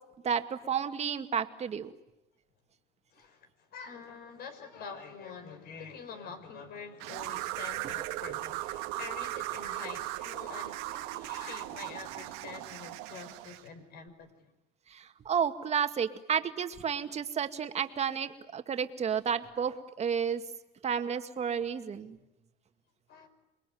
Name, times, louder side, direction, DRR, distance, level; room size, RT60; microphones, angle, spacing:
voice 1, 0.2-1.9 14.9-20.4 20.8-22.2, right 7 dB, 35° right, 8 dB, 2.1 m, -31 dB
voice 2, 3.1-14.5 23.1-23.3, left 5 dB, 60° left, 9 dB, 5.5 m, -46 dB
sound 1, 7.0-13.7, right 17 dB, 90° right, 1.7 m, -38 dB
28.0 x 22.0 x 9.4 m, 0.94 s
cardioid pair, 110°, 18 cm